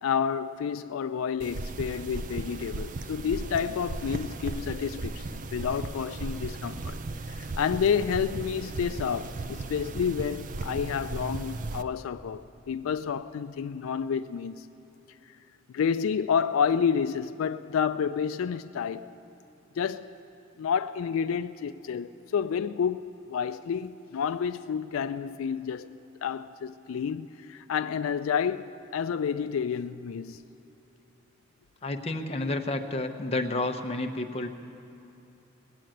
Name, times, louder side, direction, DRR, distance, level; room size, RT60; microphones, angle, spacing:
voice 1, 0.0-7.0 7.4-14.7 15.7-19.1 19.8-20.1 20.6-25.9 26.2-30.4, left 7 dB, 85° left, 0.4 m, -29 dB
sound 1, 1.4-11.8, right 3 dB, 40° right, 0.4 m, -36 dB
voice 2, 31.8-34.5, left 2 dB, 30° left, 0.8 m, -30 dB
19.0 x 7.5 x 9.1 m
head